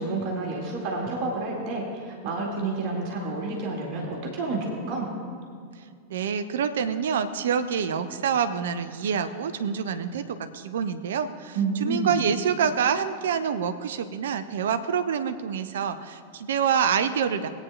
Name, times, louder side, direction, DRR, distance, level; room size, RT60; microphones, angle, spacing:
voice 1, 0.0-5.1 11.5-12.1, right 3 dB, 40° right, -1 dB, 2.0 m, -29 dB
voice 2, 6.1-17.5, right 7 dB, 60° right, 11 dB, 0.6 m, -27 dB
21.0 x 9.0 x 2.3 m, 2.2 s
figure-of-eight pair, 90°, 0 cm